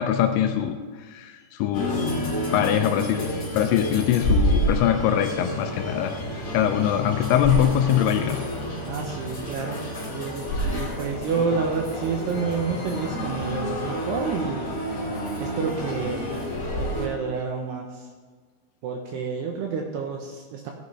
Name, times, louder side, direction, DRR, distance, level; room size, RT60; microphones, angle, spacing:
voice 1, 0.0-2.1 2.5-6.2 6.5-8.5, left 10 dB, 80° left, 7 dB, 2.7 m, -23 dB
sound 1, 1.7-17.1, equal, 45° left, 0.9 m, -29 dB
voice 2, 8.9-9.8 10.1-14.6 15.4-16.3 16.8-18.1 18.8-20.7, right 5 dB, 75° right, 1 dB, 2.5 m, -29 dB
16.5 x 9.5 x 3.3 m, 1.5 s
omnidirectional pair, 5.6 m